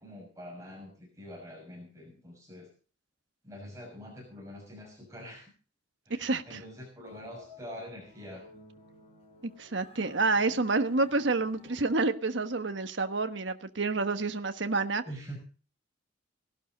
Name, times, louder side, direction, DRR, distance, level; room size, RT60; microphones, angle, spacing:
voice 1, 0.0-2.7 3.4-5.5 6.1-8.5 15.0-15.4, equal, 15° right, -2 dB, 6.3 m, -45 dB
voice 2, 6.2-6.6 9.4-15.0, right 3 dB, 70° right, 8 dB, 1.2 m, -29 dB
sound 1, 7.0-12.0, left 2 dB, 30° left, 6.1 m, -54 dB
18.5 x 12.0 x 4.0 m, 0.37 s
head